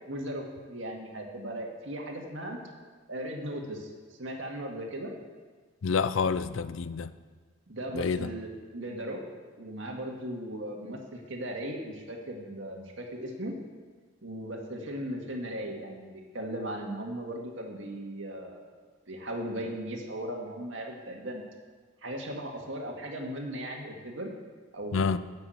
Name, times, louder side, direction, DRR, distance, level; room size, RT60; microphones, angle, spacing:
voice 1, 0.1-2.6 3.1-3.9 4.2-5.1 7.7-9.2 9.6-13.5 14.2-18.7 19.1-21.4 22.0-24.3 24.7-25.1, right 1 dB, 65° right, 1.9 m, -37 dB
voice 2, 5.8-7.1 7.9-8.3 24.9-25.2, left 5 dB, 75° left, 0.5 m, -28 dB
10.5 x 7.7 x 7.8 m
head